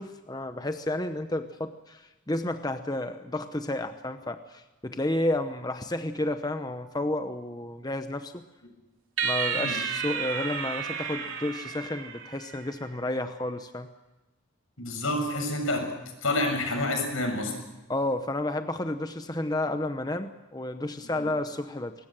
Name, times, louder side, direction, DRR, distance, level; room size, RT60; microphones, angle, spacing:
voice 1, 0.0-8.4 9.2-13.9 17.9-21.9, left 1 dB, 20° left, 8 dB, 0.9 m, -31 dB
sound 1, 9.2-12.7, right 6 dB, 80° right, 2.8 m, -32 dB
voice 2, 14.8-15.9 16.2-17.6 21.2-21.3, left 1 dB, 80° left, 4 dB, 7.0 m, -28 dB
22.5 x 20.0 x 7.6 m, 1.1 s
head